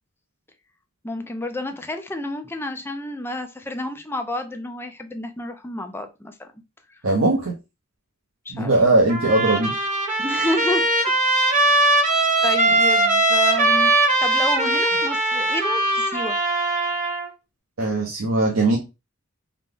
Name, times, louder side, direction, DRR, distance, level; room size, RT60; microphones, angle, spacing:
voice 1, 1.0-6.5 8.5-8.7 10.2-10.9 11.5-12.0 12.4-13.9 14.2-16.4, left 1 dB, 10° left, 0.5 m, -30 dB
voice 2, 7.0-7.5 8.5-9.7 17.8-18.8, right 2 dB, 70° right, 0.8 m, -19 dB
Trumpet, 9.1-17.3, right 2 dB, 40° right, 1.1 m, -20 dB
4.0 x 2.2 x 3.4 m
head